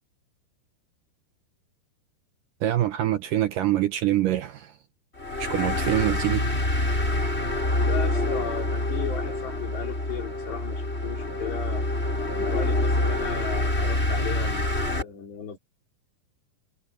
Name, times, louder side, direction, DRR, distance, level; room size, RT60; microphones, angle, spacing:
voice 1, 2.6-4.8 5.4-6.5, right 13 dB, 75° right, 2.1 m, -25 dB
sound 1, 5.2-15.0, left 1 dB, 15° left, 4.9 m, -26 dB
voice 2, 7.8-11.9 12.4-15.6, left 7 dB, 85° left, 6.4 m, -36 dB
omnidirectional pair, 4.8 m